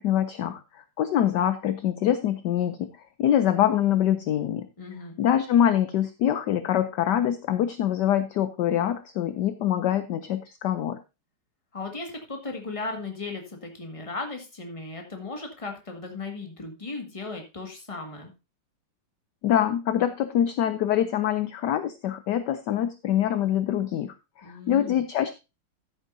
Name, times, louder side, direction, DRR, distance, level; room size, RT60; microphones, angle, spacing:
voice 1, 0.0-2.9 3.2-4.7 5.2-11.0 19.4-25.3, left 10 dB, 70° left, 11 dB, 1.0 m, -24 dB
voice 2, 4.8-5.2 11.7-18.3 24.4-25.0, left 3 dB, 15° left, 3 dB, 1.7 m, -36 dB
14.0 x 8.3 x 2.6 m, 0.27 s
omnidirectional pair, 2.4 m